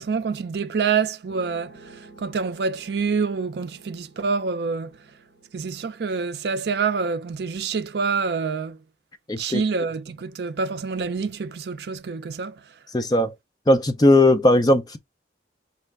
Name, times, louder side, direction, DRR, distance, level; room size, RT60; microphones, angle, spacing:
voice 1, 0.0-1.7 2.2-4.9 5.5-8.8 9.4-12.6, right 5 dB, 65° right, 0.4 m, -26 dB
sound 1, 1.3-6.5, right 2 dB, 60° left, 2.4 m, -50 dB
voice 2, 9.3-9.6 12.9-13.3 13.7-15.0, left 1 dB, 20° left, 0.5 m, -18 dB
5.3 x 2.5 x 3.3 m
head